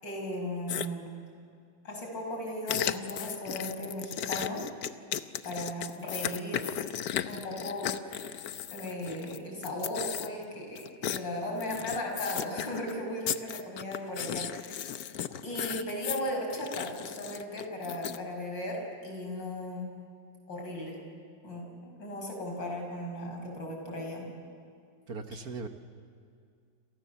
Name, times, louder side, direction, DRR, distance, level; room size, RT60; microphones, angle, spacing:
voice 1, 0.0-1.1 1.8-4.6 5.4-6.7 7.2-8.4 8.7-15.0 15.4-19.9 20.5-21.0 21.4-24.3, left 1 dB, 85° left, 1 dB, 6.5 m, -36 dB
sound 1, 0.7-0.9 2.7-9.4 9.6-10.4 10.8-11.2 11.6-12.9 13.3-18.2, left 10 dB, 70° left, 1.4 m, -35 dB
voice 2, 25.1-25.7, right 4 dB, 55° right, 7 dB, 1.8 m, -38 dB
29.5 x 28.0 x 7.2 m, 2.3 s
omnidirectional pair, 1.9 m